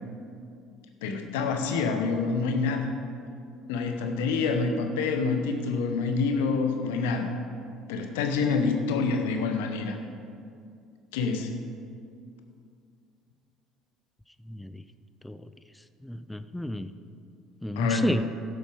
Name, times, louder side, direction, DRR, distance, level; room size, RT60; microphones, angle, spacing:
voice 1, 1.0-2.9 3.7-7.3 7.9-10.0 11.1-11.5 17.8-18.1, left 4 dB, 70° left, 5 dB, 1.0 m, -27 dB
voice 2, 14.5-14.8 15.2-15.5 16.0-16.9 17.6-18.3, left 1 dB, 5° left, 11 dB, 0.4 m, -31 dB
12.0 x 6.6 x 5.0 m, 2.4 s
hypercardioid pair, 60°, 0 cm